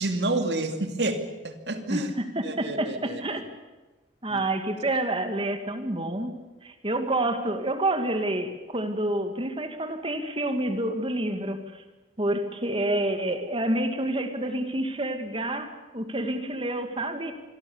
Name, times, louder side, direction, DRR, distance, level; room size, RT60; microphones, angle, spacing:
voice 1, 0.0-2.1 2.4-3.2 4.3-4.4 4.9-5.0, right 2 dB, 70° right, 7 dB, 2.7 m, -29 dB
voice 2, 1.9-3.4 4.2-6.3 6.6-11.8 12.2-17.3, right 1 dB, 30° right, 7 dB, 2.0 m, -28 dB
27.0 x 22.5 x 7.1 m, 1.2 s
head